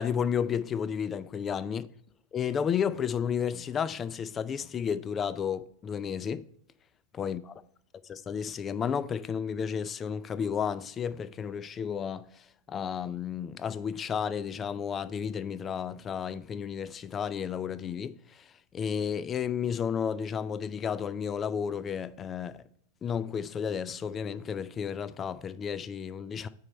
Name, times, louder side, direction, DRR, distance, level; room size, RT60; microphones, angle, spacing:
voice 1, 0.0-1.9 2.3-6.5 7.1-7.4 8.1-22.6 23.0-26.5, left 7 dB, 25° left, 0.4 m, -32 dB
8.9 x 4.2 x 4.2 m
figure-of-eight pair, 90°, 0 cm